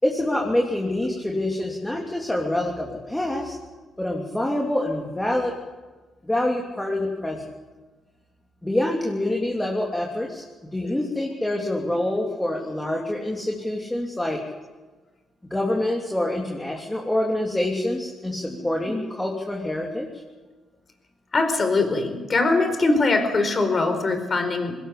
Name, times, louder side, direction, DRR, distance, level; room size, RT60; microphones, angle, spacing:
voice 1, 0.0-3.6 4.0-5.5 6.3-7.4 8.6-10.4 10.7-14.4 15.4-20.1, left 1 dB, 10° left, -1 dB, 3.2 m, -26 dB
voice 2, 21.3-24.8, left 3 dB, 40° left, 7 dB, 4.6 m, -22 dB
20.5 x 18.0 x 8.4 m, 1.3 s
cardioid pair, 90°, 0 cm